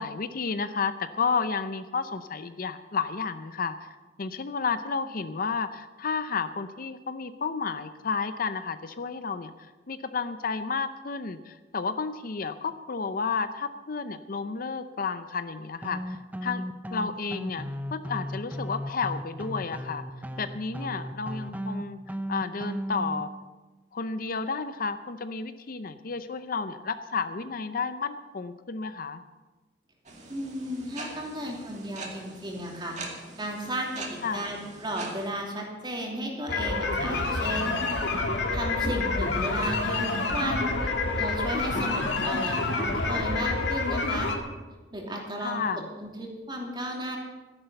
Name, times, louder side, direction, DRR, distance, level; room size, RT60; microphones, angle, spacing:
voice 1, 0.0-3.9 4.2-9.5 9.9-16.6 16.9-20.0 20.4-22.0 22.3-23.3 23.9-29.2 34.2-34.5 41.7-42.4 45.4-45.8, left 5 dB, 50° left, 11 dB, 0.6 m, -32 dB
sound 1, 15.8-23.2, equal, 10° right, 0.8 m, -35 dB
sound 2, 30.1-35.3, right 3 dB, 40° right, 2.2 m, -42 dB
voice 2, 30.3-38.1 38.5-44.3 44.9-47.2, right 1 dB, 25° right, 0 dB, 2.9 m, -34 dB
sound 3, 36.5-44.4, left 3 dB, 75° left, 1.9 m, -28 dB
13.0 x 11.0 x 7.0 m, 1.2 s
head